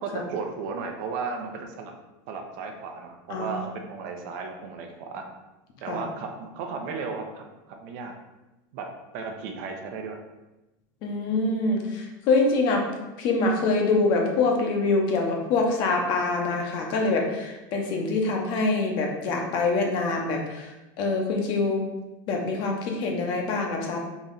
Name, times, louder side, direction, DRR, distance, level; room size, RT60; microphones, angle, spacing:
voice 1, 0.0-1.9 2.3-5.2 5.8-8.1 8.7-8.9 9.1-10.2, right 4 dB, 60° right, 3 dB, 0.7 m, -34 dB
voice 2, 11.0-12.8 13.2-20.7 21.0-21.8 22.3-24.0, left 3 dB, 50° left, 1 dB, 0.9 m, -25 dB
4.1 x 3.1 x 3.8 m, 1.0 s
supercardioid pair, 150°, 10 cm